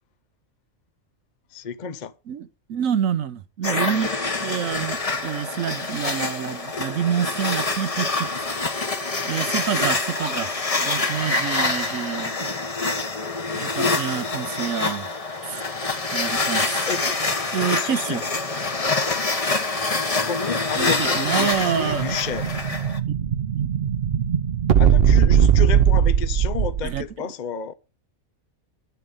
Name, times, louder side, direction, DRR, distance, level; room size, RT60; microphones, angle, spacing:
voice 1, 1.5-2.1 11.6-11.7 16.9-17.2 17.7-18.6 20.2-22.5 24.8-27.7, left 7 dB, 45° left, 0.6 m, -31 dB
voice 2, 2.3-4.1 4.4-8.3 9.2-10.5 10.8-12.5 13.5-15.1 15.4-15.6 16.1-16.8 17.5-18.2 20.8-22.1 23.5-23.8 26.8-27.0, right 9 dB, 70° right, 1.2 m, -27 dB
sound 1, 3.6-23.0, left 3 dB, 25° left, 1.2 m, -26 dB
Explosion, 20.9-27.0, right 8 dB, 50° right, 0.8 m, -20 dB
10.5 x 9.8 x 5.3 m
omnidirectional pair, 1.4 m